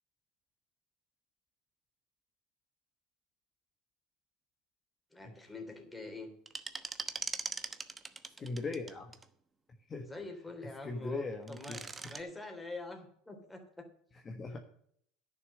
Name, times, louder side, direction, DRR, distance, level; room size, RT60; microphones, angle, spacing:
voice 1, 5.1-6.3 10.1-13.9, left 2 dB, 10° left, 4 dB, 3.1 m, -45 dB
sound 1, 6.5-9.2 11.3-12.2, right 4 dB, 20° right, 0.9 m, -41 dB
voice 2, 8.4-9.1 9.9-10.1 10.8-11.8 14.2-14.6, left 3 dB, 30° left, 4 dB, 1.4 m, -39 dB
11.0 x 6.7 x 7.6 m, 0.66 s
hypercardioid pair, 90°, 0 cm